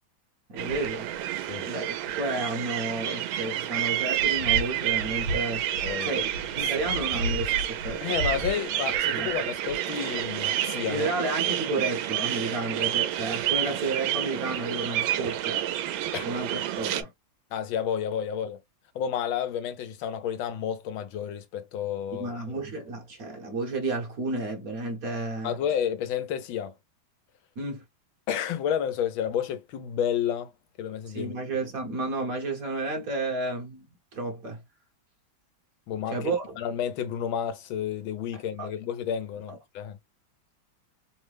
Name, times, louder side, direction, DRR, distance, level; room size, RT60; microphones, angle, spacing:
voice 1, 0.5-1.1 1.6-8.2 9.1-9.3 10.9-15.7 16.2-17.1 22.2-25.6 27.6-27.8 31.1-33.9 34.1-34.6 36.1-36.6 38.3-38.7 39.5-39.6, right 2 dB, 50° right, 1.2 m, -32 dB
sound 1, 0.6-17.0, right 10 dB, 90° right, 1.4 m, -29 dB
voice 2, 8.0-11.1 16.1-16.2 17.5-18.6 18.9-22.3 25.4-26.7 28.3-30.5 30.8-31.3 35.9-40.0, left 9 dB, 85° left, 1.5 m, -30 dB
3.6 x 2.1 x 3.2 m
omnidirectional pair, 2.2 m